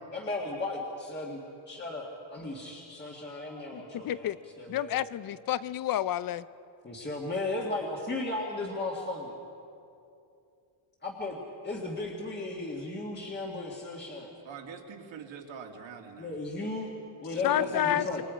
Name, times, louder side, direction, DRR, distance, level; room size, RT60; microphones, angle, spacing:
voice 1, 0.1-1.4 1.7-5.0 6.8-9.4 11.0-14.3 16.2-16.9 17.2-18.2, left 2 dB, 20° left, -3 dB, 1.9 m, -35 dB
voice 2, 3.7-4.4 4.7-6.4 17.4-18.1, left 11 dB, 45° left, 17 dB, 0.6 m, -29 dB
voice 3, 14.4-16.3 17.3-18.1, right 6 dB, 65° right, 2 dB, 2.4 m, -45 dB
28.0 x 21.5 x 5.1 m, 2.6 s
cardioid pair, 165°, 48 cm